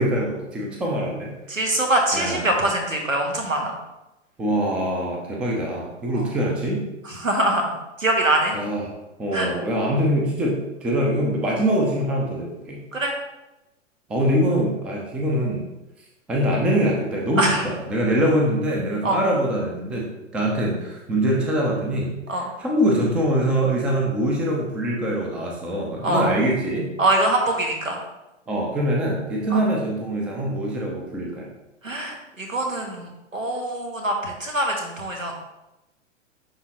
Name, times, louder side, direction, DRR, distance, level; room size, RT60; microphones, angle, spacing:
voice 1, 0.0-1.3 2.1-2.4 4.4-6.8 8.5-8.9 9.2-12.8 14.1-15.7 16.3-20.0 20.3-26.9 28.5-31.5, right 1 dB, 5° right, -1 dB, 0.4 m, -23 dB
voice 2, 1.5-3.8 6.1-6.3 7.1-8.6 9.3-9.5 12.9-13.1 17.4-17.7 19.0-19.2 22.3-22.5 26.0-26.3 27.0-28.0 29.5-29.6 31.8-35.3, right 1 dB, 85° right, 1 dB, 1.6 m, -23 dB
10.0 x 3.6 x 2.9 m, 0.97 s
figure-of-eight pair, 110°, 38 cm